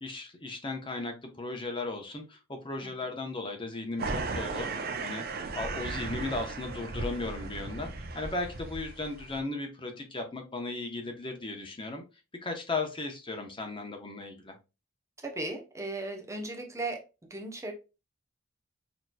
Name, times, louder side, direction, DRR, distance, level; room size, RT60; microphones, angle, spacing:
voice 1, 0.0-5.2 5.6-7.9 8.1-12.0 12.4-14.5, left 3 dB, 25° left, 4 dB, 0.8 m, -36 dB
sound 1, 4.0-9.4, right 3 dB, 50° right, 0.6 m, -36 dB
voice 2, 15.2-17.0 17.3-17.7, right 2 dB, 15° right, 2 dB, 0.7 m, -36 dB
6.4 x 3.0 x 2.2 m, 0.28 s
head